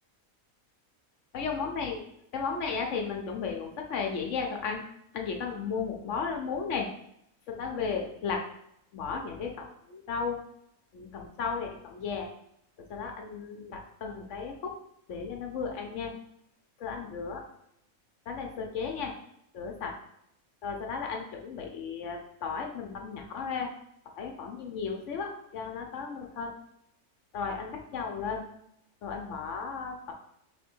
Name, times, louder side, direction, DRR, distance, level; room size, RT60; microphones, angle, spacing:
voice 1, 1.3-2.1 2.3-4.8 5.1-6.9 7.5-8.4 8.9-10.4 10.9-12.3 12.9-14.7 15.1-16.1 16.8-17.4 18.3-19.1 19.5-19.9 20.6-23.7 24.2-26.5 27.3-28.4 29.0-30.1, left 5 dB, 65° left, 2 dB, 0.9 m, -34 dB
3.6 x 3.4 x 4.4 m, 0.76 s
omnidirectional pair, 1.5 m